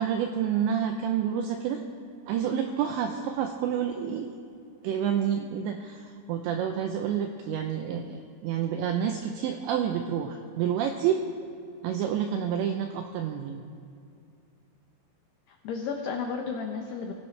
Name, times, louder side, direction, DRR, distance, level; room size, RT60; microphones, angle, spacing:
voice 1, 0.0-1.8 2.3-4.5 4.8-11.2 11.8-13.7, right 8 dB, 85° right, 5 dB, 2.5 m, -29 dB
voice 2, 15.5-17.1, left 5 dB, 85° left, 2 dB, 2.3 m, -33 dB
23.5 x 17.0 x 3.3 m, 2.5 s
omnidirectional pair, 6.0 m